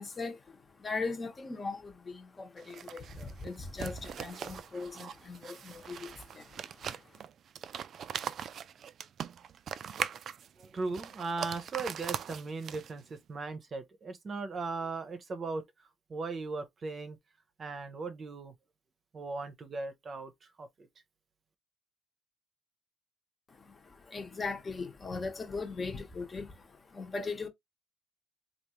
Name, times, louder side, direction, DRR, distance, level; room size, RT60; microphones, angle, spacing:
voice 1, 0.0-7.2 23.5-27.5, left 4 dB, 30° left, 0.9 m, -39 dB
sound 1, 2.6-13.1, right 8 dB, 55° right, 0.3 m, -41 dB
voice 2, 10.6-17.2 17.6-18.5 19.1-20.9, right 3 dB, 40° right, 0.7 m, -38 dB
3.4 x 2.4 x 3.0 m
cardioid pair, 100°, 0 cm